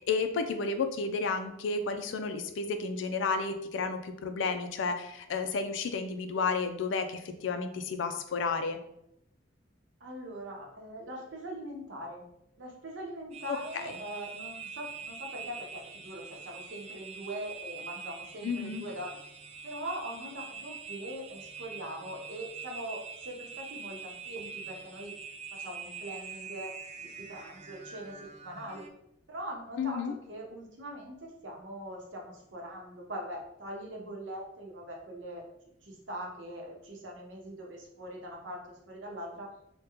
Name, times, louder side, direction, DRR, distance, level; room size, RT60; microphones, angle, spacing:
voice 1, 0.1-8.8 13.5-14.0 18.4-18.8 29.8-30.2, left 4 dB, 75° left, 7 dB, 0.4 m, -32 dB
voice 2, 10.0-12.2 12.6-19.1 19.6-25.1 25.5-26.7 27.0-28.1 28.4-28.8 29.3-35.4 35.8-38.6 38.9-39.5, right 1 dB, 75° right, -1 dB, 0.8 m, -42 dB
sound 1, 13.3-28.9, right 6 dB, 35° right, 0.3 m, -44 dB
3.5 x 2.1 x 2.9 m, 0.80 s
head